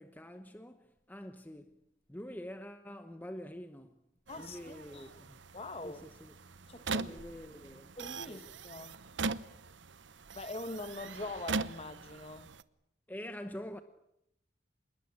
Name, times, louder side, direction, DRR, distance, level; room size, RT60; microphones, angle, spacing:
voice 1, 0.0-1.8 2.1-4.0 4.4-5.4 5.8-6.3 7.1-7.9 8.3-8.4 13.1-13.8, equal, 10° left, 1.0 m, -46 dB
voice 2, 4.3-5.1 5.5-6.0 6.7-7.2 8.0-9.0 10.3-12.5, left 2 dB, 30° left, 1.7 m, -43 dB
sound 1, 4.3-12.6, right 4 dB, 75° right, 0.9 m, -41 dB
26.0 x 21.0 x 8.6 m
head